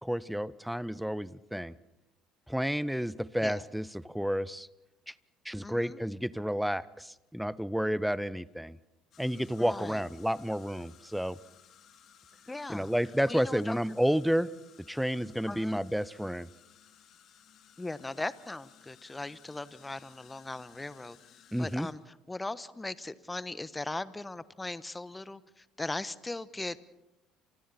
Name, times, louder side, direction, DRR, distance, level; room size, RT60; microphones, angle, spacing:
voice 1, 0.0-1.7 2.5-4.7 5.1-5.2 5.4-8.8 9.2-11.4 12.7-14.5 14.9-16.5 21.5-21.9, equal, ahead, 19 dB, 0.8 m, -31 dB
voice 2, 5.6-6.0 9.6-10.0 12.5-12.9 13.3-13.8 15.5-15.8 17.8-21.2 21.6-26.8, left 2 dB, 15° left, 16 dB, 1.2 m, -39 dB
sound 1, 9.1-21.9, left 9 dB, 55° left, 3.0 m, -59 dB
29.5 x 27.0 x 4.3 m, 0.99 s
hypercardioid pair, 60°, 0 cm